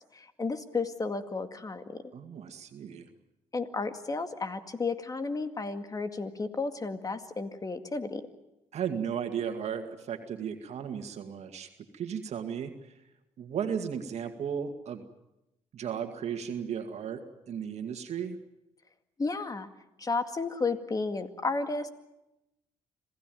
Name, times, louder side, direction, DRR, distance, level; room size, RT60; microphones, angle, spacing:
voice 1, 0.1-2.0 3.5-8.3 19.2-19.7 20.0-21.9, left 3 dB, 30° left, 8 dB, 2.1 m, -33 dB
voice 2, 2.1-3.1 8.7-13.0 13.4-15.0 15.7-18.4, right 8 dB, 65° right, 6 dB, 2.1 m, -35 dB
26.5 x 16.5 x 9.3 m, 0.93 s
cardioid pair, 85°, 12 cm